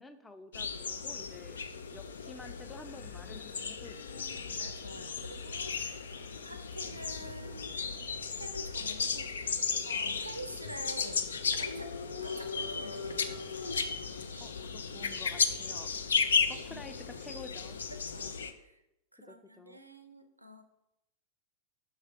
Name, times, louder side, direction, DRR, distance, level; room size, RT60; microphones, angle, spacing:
voice 1, 0.0-1.6 1.9-4.2 14.4-15.9 16.5-17.8 19.3-19.8, left 3 dB, 10° left, 8 dB, 0.5 m, -50 dB
sound 1, 0.5-18.5, left 5 dB, 70° left, 0.4 m, -35 dB
sound 2, 2.6-15.3, left 2 dB, 45° left, 1.7 m, -57 dB
voice 2, 4.1-7.8 8.3-9.3 9.8-11.3 11.6-11.9 12.2-13.5 16.4-16.8 17.9-18.8 19.1-20.6, right 1 dB, 85° right, 9 dB, 0.5 m, -47 dB
sound 3, 10.0-17.4, equal, 90° left, 0.9 m, -56 dB
6.0 x 3.3 x 5.5 m, 0.88 s
figure-of-eight pair, 90°, 0 cm